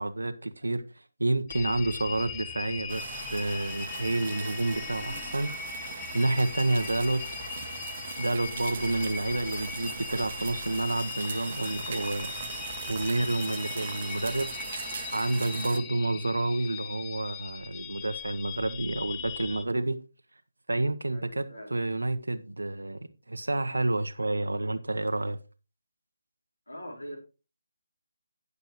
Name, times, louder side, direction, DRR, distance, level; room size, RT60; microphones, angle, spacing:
voice 1, 0.0-5.7 6.1-7.2 8.2-12.4 12.9-14.7 15.1-20.0 20.7-25.4, right 2 dB, 80° right, 0.9 m, -29 dB
sound 1, 1.5-19.6, left 8 dB, 15° left, 0.7 m, -40 dB
sound 2, 2.9-15.8, right 6 dB, 45° right, 1.0 m, -40 dB
voice 2, 21.1-21.7 26.7-27.2, equal, 80° left, 4.5 m, -42 dB
18.0 x 6.7 x 3.0 m
figure-of-eight pair, 150°, 0 cm